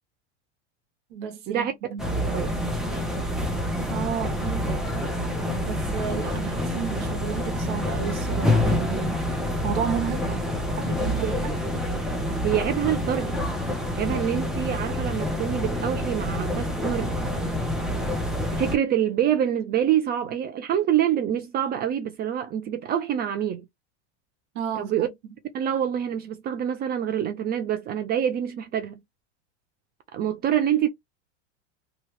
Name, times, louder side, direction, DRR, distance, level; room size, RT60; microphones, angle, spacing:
voice 1, 1.1-2.2 3.9-4.8 5.5-9.4 9.6-10.4 10.8-11.5 24.5-25.1, right 7 dB, 80° right, 1.1 m, -32 dB
sound 1, 2.0-18.8, left 1 dB, ahead, 0.8 m, -27 dB
voice 2, 2.1-2.5 11.1-11.3 12.4-13.4 14.0-17.1 18.5-23.7 24.8-25.1 25.5-29.0 30.1-30.9, right 10 dB, 30° right, 0.4 m, -26 dB
2.9 x 2.3 x 3.1 m
supercardioid pair, 125°, 35 cm